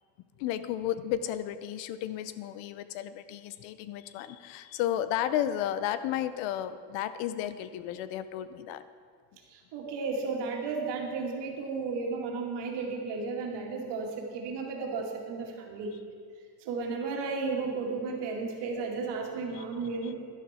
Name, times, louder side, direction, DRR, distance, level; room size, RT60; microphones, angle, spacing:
voice 1, 0.4-8.8 19.5-19.6 20.0-20.1, left 11 dB, 80° left, 13 dB, 0.8 m, -33 dB
voice 2, 9.5-15.9 16.6-20.1, right 4 dB, 65° right, 0 dB, 2.3 m, -34 dB
11.5 x 11.0 x 4.4 m, 2.1 s
cardioid pair, 130°, 45 cm